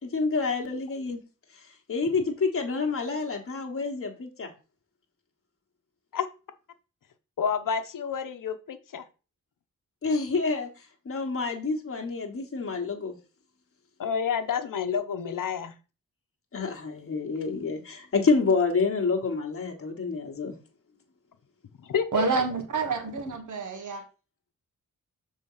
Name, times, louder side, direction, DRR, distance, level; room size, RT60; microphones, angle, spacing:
voice 1, 0.0-1.2 1.9-4.5 10.0-10.7 11.0-13.1 16.5-20.5, left 4 dB, 45° left, 2 dB, 1.4 m, -28 dB
voice 2, 7.4-9.0 14.0-15.7 21.8-22.2, left 7 dB, 75° left, 9 dB, 0.9 m, -29 dB
voice 3, 22.1-24.0, right 4 dB, 65° right, 6 dB, 1.4 m, -28 dB
6.9 x 3.7 x 5.6 m, 0.33 s
wide cardioid pair, 170°, 32 cm